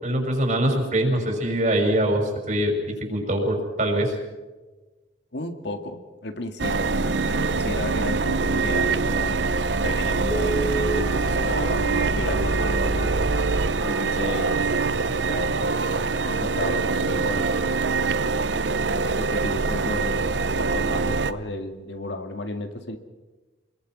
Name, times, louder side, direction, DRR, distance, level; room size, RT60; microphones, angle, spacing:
voice 1, 0.0-4.1, right 1 dB, 40° right, 2 dB, 6.0 m, -23 dB
voice 2, 5.3-6.9 7.2-9.5 9.8-13.1 13.8-14.6 15.1-17.5 18.1-23.0, left 2 dB, 65° left, 6 dB, 2.1 m, -34 dB
sound 1, 6.6-21.3, right 4 dB, 70° right, 0.8 m, -24 dB
Telephone, 9.5-9.6 10.2-15.1 15.6-15.7 16.1-16.3 16.6-16.9 17.3-17.4, right 3 dB, 15° right, 1.4 m, -32 dB
28.5 x 22.0 x 6.2 m, 1.2 s
head